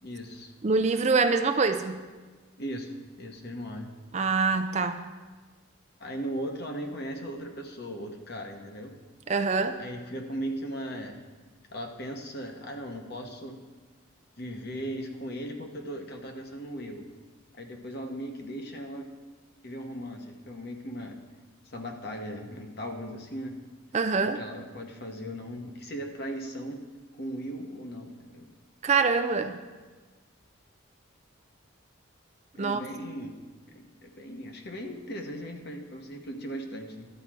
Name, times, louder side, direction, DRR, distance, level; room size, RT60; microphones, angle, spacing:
voice 1, 0.0-0.5 2.6-3.9 6.0-8.9 9.8-11.2 11.7-13.6 14.4-17.0 17.5-19.1 19.6-21.2 21.6-23.6 24.2-26.8 27.1-28.5 32.5-33.4 33.7-37.1, equal, 50° left, 3 dB, 1.2 m, -38 dB
voice 2, 0.6-2.0 4.1-5.0 9.3-9.8 23.9-24.4 28.8-29.6 32.6-32.8, right 4 dB, 35° right, 8 dB, 0.4 m, -25 dB
12.0 x 4.8 x 7.5 m, 1.3 s
head